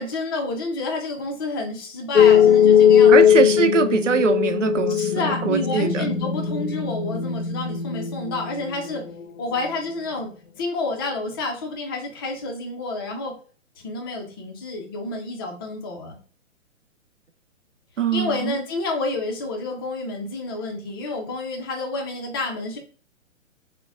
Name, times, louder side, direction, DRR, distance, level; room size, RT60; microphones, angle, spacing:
voice 1, 0.0-3.3 5.0-9.0 9.4-10.3 10.6-13.3 13.8-16.2 18.1-22.8, left 2 dB, 20° left, 0.5 m, -29 dB
sound 1, 2.2-9.1, left 8 dB, 85° left, 0.6 m, -18 dB
voice 2, 3.1-6.1 18.0-18.6, right 7 dB, 70° right, 0.6 m, -22 dB
3.9 x 2.2 x 3.5 m
figure-of-eight pair, 125°, 39 cm